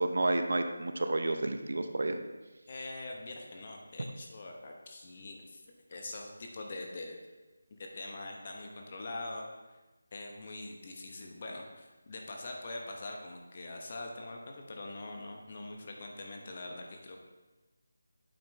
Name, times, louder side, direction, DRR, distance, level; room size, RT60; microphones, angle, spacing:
voice 1, 0.0-2.2, right 2 dB, 60° right, 7 dB, 0.7 m, -30 dB
voice 2, 2.7-5.6 5.9-7.2 7.7-9.5 10.1-17.2, left 2 dB, 35° left, 1 dB, 1.1 m, -43 dB
8.7 x 5.7 x 3.3 m, 1.2 s
figure-of-eight pair, 170°, 0 cm